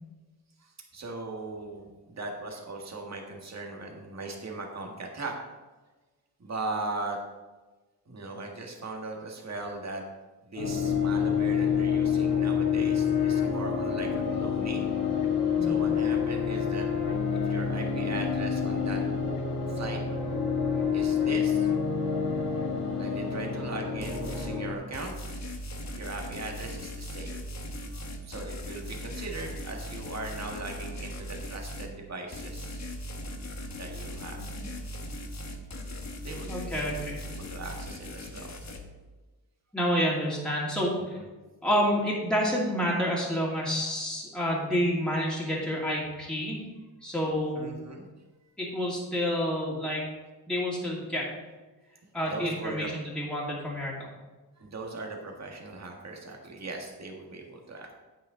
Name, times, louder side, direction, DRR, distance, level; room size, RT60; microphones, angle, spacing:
voice 1, 0.6-5.4 6.4-7.2 8.1-10.0 10.5-14.9 15.6-16.9 17.3-19.0 19.7-20.0 20.9-21.7 23.0-25.1 25.9-27.3 27.9-32.8 33.8-34.4 36.2-36.7 37.3-38.7 41.1-41.2 47.5-48.1 52.2-52.9 54.6-57.9, right 3 dB, 40° right, 1 dB, 1.7 m, -39 dB
sound 1, 10.6-24.7, left 7 dB, 70° left, 2.6 m, -27 dB
voice 2, 15.6-15.9 34.4-34.5 36.5-37.2 39.7-41.2 41.6-46.6 47.0-47.7 48.6-50.0 50.5-51.3 52.1-54.1, equal, ahead, -5 dB, 2.5 m, -29 dB
sound 2, 24.0-24.5 24.9-31.9 32.3-38.8, left 1 dB, 40° left, 1.2 m, -39 dB
9.0 x 8.4 x 3.9 m, 1.2 s
wide cardioid pair, 100°, 41 cm